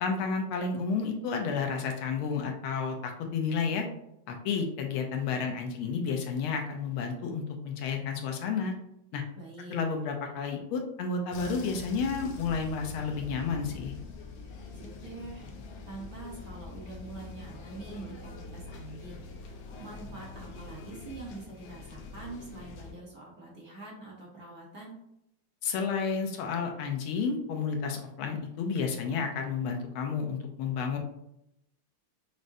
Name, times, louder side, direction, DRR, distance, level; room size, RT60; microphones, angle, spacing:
voice 1, 0.0-3.9 4.3-8.7 9.1-9.2 9.7-13.9 25.6-31.0, left 5 dB, 85° left, 3 dB, 1.5 m, -31 dB
voice 2, 9.3-9.8 14.7-15.5 15.9-25.0, right 3 dB, 50° right, -4 dB, 1.3 m, -45 dB
sound 1, 11.3-22.9, left 3 dB, 70° left, 1.3 m, -44 dB
6.1 x 2.1 x 2.6 m, 0.80 s
omnidirectional pair, 2.3 m